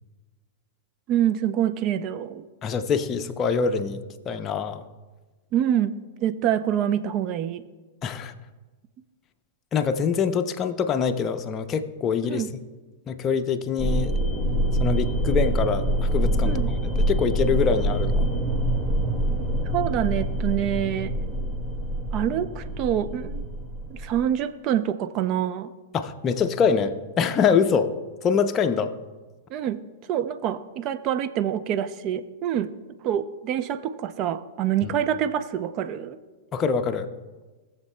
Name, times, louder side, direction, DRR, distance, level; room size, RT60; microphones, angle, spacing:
voice 1, 1.1-2.4 5.5-7.6 12.2-12.5 16.4-16.7 19.7-21.1 22.1-23.4 23.9-25.7 29.5-29.8 30.1-32.7 33.0-36.2, right 10 dB, 40° right, 12 dB, 0.5 m, -26 dB
voice 2, 2.6-4.0 4.3-4.8 8.0-8.3 9.7-12.4 13.1-14.1 14.8-18.3 25.9-27.9 28.2-28.9 34.8-34.9 36.5-37.1, left 6 dB, 30° left, 7 dB, 0.6 m, -24 dB
sound 1, 13.8-24.3, right 1 dB, 20° right, 1.9 m, -25 dB
18.0 x 7.2 x 2.2 m, 1.3 s
hypercardioid pair, 110°, 0 cm